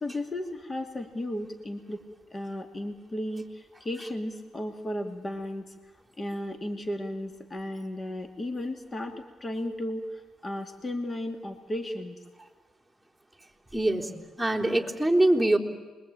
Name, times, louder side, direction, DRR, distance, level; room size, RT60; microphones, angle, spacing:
voice 1, 0.0-2.0 2.3-5.7 6.2-10.0 10.4-12.2, left 1 dB, 25° left, 6 dB, 2.4 m, -34 dB
voice 2, 13.7-14.1 14.4-15.6, right 1 dB, 5° left, 0 dB, 3.7 m, -23 dB
28.0 x 22.5 x 8.9 m, 1.3 s
cardioid pair, 90°, 0 cm